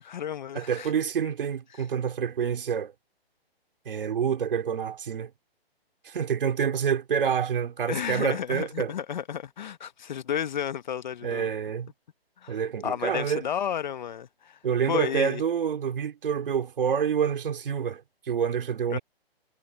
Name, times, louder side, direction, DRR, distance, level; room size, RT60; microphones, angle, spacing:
voice 1, 0.0-0.9 1.7-1.8 7.9-11.5 12.4-14.6 14.9-15.4 18.9-19.0, left 9 dB, 45° left, 1.0 m, -32 dB
voice 2, 0.5-2.9 3.9-5.3 6.0-8.9 11.2-11.9 12.5-13.4 14.6-18.0 18.3-19.0, right 7 dB, 60° right, 4.0 m, -27 dB
hypercardioid pair, 160°, 31 cm